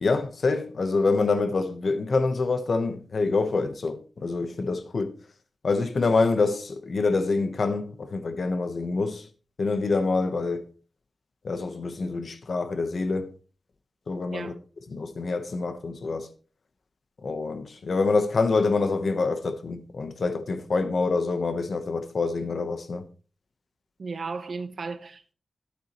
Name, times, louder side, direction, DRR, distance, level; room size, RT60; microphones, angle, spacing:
voice 1, 0.0-5.1 5.6-9.3 9.6-10.7 11.4-13.3 14.1-14.5 14.9-16.3 17.2-23.1, left 3 dB, 55° left, 1.0 m, -26 dB
voice 2, 24.0-25.3, right 4 dB, 50° right, 1.0 m, -35 dB
12.0 x 9.0 x 3.1 m
wide cardioid pair, 145°, 0 cm